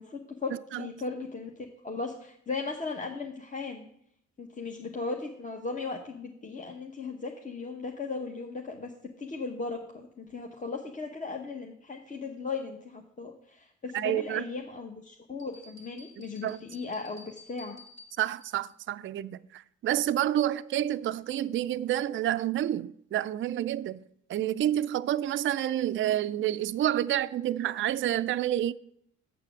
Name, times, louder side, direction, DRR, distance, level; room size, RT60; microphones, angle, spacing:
voice 1, 0.0-3.9 4.4-17.8, left 4 dB, 25° left, 0.9 m, -37 dB
voice 2, 13.9-14.4 16.2-16.6 18.2-24.0 24.3-28.7, right 12 dB, 40° right, 0.4 m, -29 dB
sound 1, 15.4-18.7, left 2 dB, 60° left, 1.9 m, -53 dB
7.0 x 6.6 x 7.1 m
cardioid pair, 90°, 30 cm